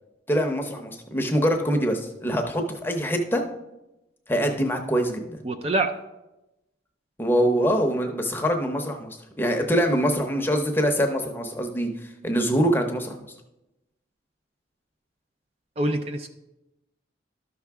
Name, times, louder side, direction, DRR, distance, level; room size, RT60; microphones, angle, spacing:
voice 1, 0.3-3.4 4.3-5.4 7.2-13.2, equal, 10° left, 3 dB, 0.7 m, -24 dB
voice 2, 5.4-5.9 15.8-16.3, right 1 dB, 30° right, 5 dB, 0.4 m, -25 dB
12.5 x 5.8 x 3.5 m, 0.96 s
head